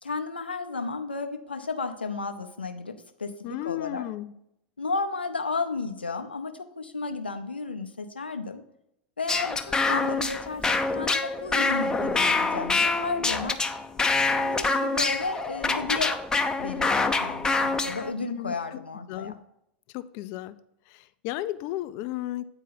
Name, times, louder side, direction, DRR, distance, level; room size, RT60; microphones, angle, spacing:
voice 1, 0.0-3.3 3.6-4.0 4.8-8.6 9.2-13.6 14.4-16.1 16.6-19.3, left 4 dB, 90° left, 6 dB, 0.7 m, -33 dB
voice 2, 3.4-4.3 18.2-18.8 19.1-19.4 19.9-20.6 20.9-22.4, left 15 dB, 50° left, 13 dB, 0.5 m, -34 dB
sound 1, 9.3-18.1, left 3 dB, 15° left, 0.7 m, -26 dB
8.8 x 4.5 x 5.9 m, 0.76 s
hypercardioid pair, 90°, 5 cm